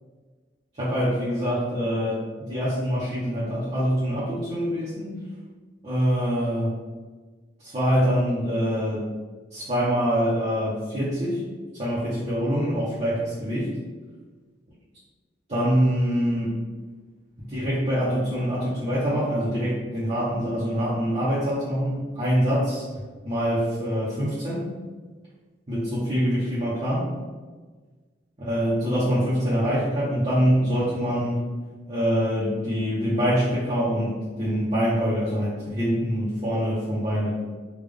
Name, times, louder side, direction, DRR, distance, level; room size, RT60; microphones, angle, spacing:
voice 1, 0.8-2.2 2.5-5.1 5.8-6.7 7.6-9.1 9.5-11.4 11.7-13.7 15.5-16.6 17.5-22.8 23.2-24.6 25.7-27.1 28.4-31.4 31.9-37.3, equal, 35° right, -10 dB, 0.8 m, -24 dB
3.5 x 2.4 x 3.5 m, 1.4 s
head